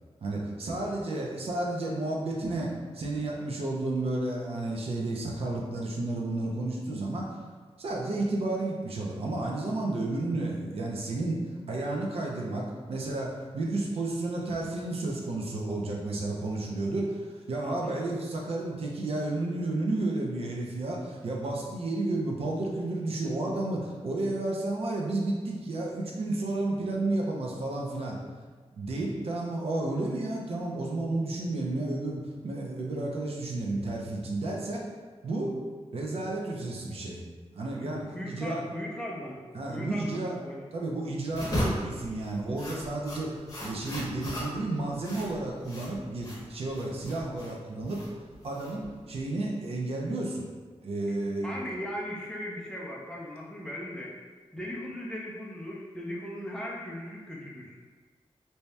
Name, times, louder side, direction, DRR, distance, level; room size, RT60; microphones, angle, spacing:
voice 1, 0.2-7.3 7.8-11.4 11.7-28.2 28.8-34.8 35.2-35.5 35.9-37.2 37.5-38.6 39.5-40.4 40.7-43.3 43.6-48.0 48.4-50.5 50.8-51.7, right 2 dB, 60° right, -2 dB, 0.5 m, -32 dB
voice 2, 17.6-18.0 37.8-39.4 39.7-40.6 51.4-54.2 54.5-57.8, left 1 dB, 5° left, -4 dB, 0.4 m, -38 dB
sound 1, 41.3-49.2, equal, 30° left, 0.8 m, -36 dB
2.7 x 2.2 x 3.2 m, 1.5 s
wide cardioid pair, 135°, 11 cm